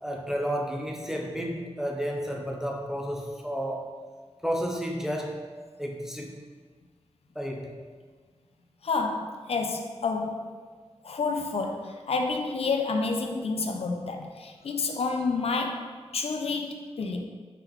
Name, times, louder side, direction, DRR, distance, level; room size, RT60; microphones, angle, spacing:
voice 1, 0.0-3.9 4.4-5.5 5.8-6.5 7.4-7.8, equal, 5° right, 1 dB, 0.4 m, -32 dB
voice 2, 8.8-10.5 11.0-17.3, left 4 dB, 65° left, 5 dB, 0.4 m, -29 dB
3.7 x 3.3 x 2.9 m, 1.5 s
wide cardioid pair, 90°, 11 cm